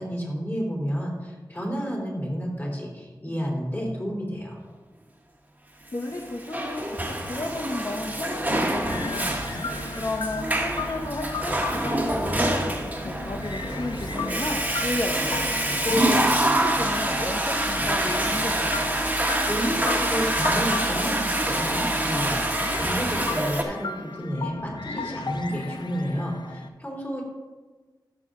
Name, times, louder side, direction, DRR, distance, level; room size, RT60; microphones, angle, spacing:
voice 1, 0.0-4.6 19.2-27.2, equal, 25° left, -2 dB, 3.1 m, -31 dB
voice 2, 5.9-9.4 10.0-18.7, left 2 dB, 45° left, 1 dB, 0.9 m, -33 dB
Water / Toilet flush, 6.1-23.6, right 1 dB, 20° right, 1.3 m, -26 dB
sound 1, 8.5-26.7, left 4 dB, 70° left, 0.6 m, -36 dB
13.0 x 6.6 x 3.8 m, 1.3 s
wide cardioid pair, 65°, 8 cm